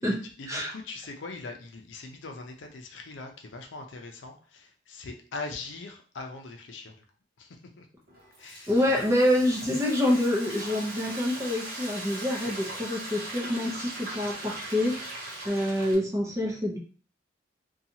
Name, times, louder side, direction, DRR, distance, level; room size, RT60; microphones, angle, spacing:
voice 1, 0.0-7.0 7.4-7.9 8.4-8.7, left 3 dB, 75° left, 4 dB, 0.5 m, -41 dB
Frying (food), 8.1-16.0, right 1 dB, 50° right, 0.8 m, -39 dB
voice 2, 8.7-16.8, left 1 dB, 15° right, -2 dB, 0.6 m, -27 dB
2.7 x 2.3 x 2.8 m, 0.40 s
head